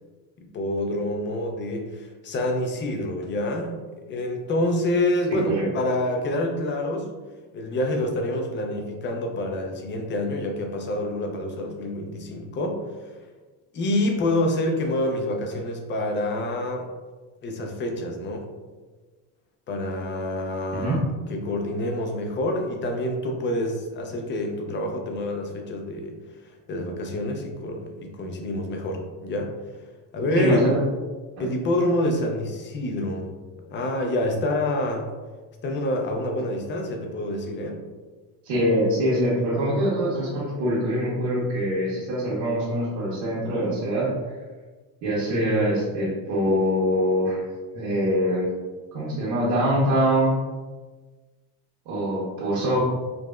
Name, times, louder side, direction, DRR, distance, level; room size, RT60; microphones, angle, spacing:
voice 1, 0.4-7.1 7.5-13.1 13.7-16.9 17.4-18.5 19.7-21.0 21.3-26.2 26.7-29.5 30.1-30.6 31.4-33.3 33.7-35.1 35.6-37.8, left 1 dB, 25° left, 3 dB, 0.3 m, -27 dB
voice 2, 5.3-5.6 20.7-21.0 30.3-30.8 38.4-44.1 45.0-47.4 47.7-48.6 48.9-50.4 51.8-52.8, equal, 70° right, -9 dB, 1.3 m, -24 dB
4.8 x 2.0 x 2.3 m, 1.3 s
cardioid pair, 120°, 48 cm